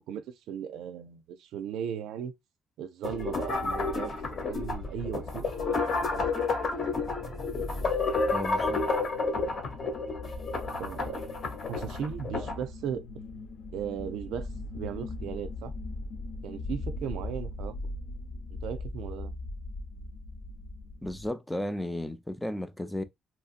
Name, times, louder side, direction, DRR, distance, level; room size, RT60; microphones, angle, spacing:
voice 1, 0.0-2.3 2.8-6.0 7.2-7.4 10.5-11.2 11.7-13.1 13.7-14.5 14.7-15.7 16.4-18.0 18.6-19.3, right 8 dB, 80° right, 0.4 m, -37 dB
sound 1, 3.0-12.6, left 3 dB, 40° left, 1.0 m, -30 dB
sound 2, 3.1-21.3, left 2 dB, 75° left, 0.8 m, -41 dB
voice 2, 8.3-8.9 21.0-23.0, left 1 dB, 5° left, 0.3 m, -34 dB
3.0 x 2.7 x 2.4 m
cardioid pair, 140°, 0 cm